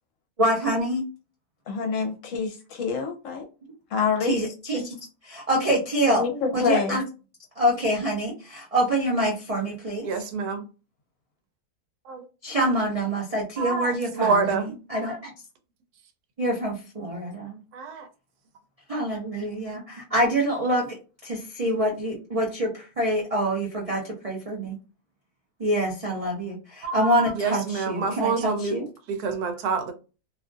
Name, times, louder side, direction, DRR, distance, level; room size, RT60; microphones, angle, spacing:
voice 1, 0.4-1.1 4.2-5.0 5.2-6.2 6.5-7.0 7.6-10.1 12.4-14.6 14.9-15.3 16.4-17.6 18.9-20.9 21.2-24.8 25.6-28.9, right 1 dB, 60° right, 0.3 m, -26 dB
voice 2, 1.7-3.4 3.9-4.4 6.1-7.0, left 6 dB, 65° left, 0.9 m, -26 dB
voice 3, 10.0-10.6 12.1-12.2 13.6-14.7 17.7-18.1 26.8-28.7 29.1-29.9, right 4 dB, 90° right, 1.2 m, -27 dB
2.7 x 2.4 x 2.4 m
omnidirectional pair, 1.6 m